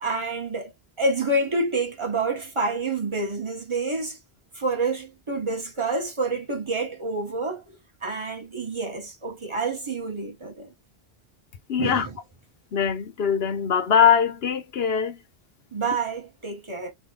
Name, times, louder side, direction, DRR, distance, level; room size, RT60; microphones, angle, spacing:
voice 1, 0.0-0.7 1.0-4.2 4.5-7.6 8.0-10.7 11.8-12.2 15.7-16.9, right 3 dB, 25° right, 1.4 m, -28 dB
voice 2, 11.7-12.1 12.7-15.2, left 7 dB, 65° left, 1.0 m, -22 dB
3.3 x 2.5 x 3.9 m
omnidirectional pair, 1.1 m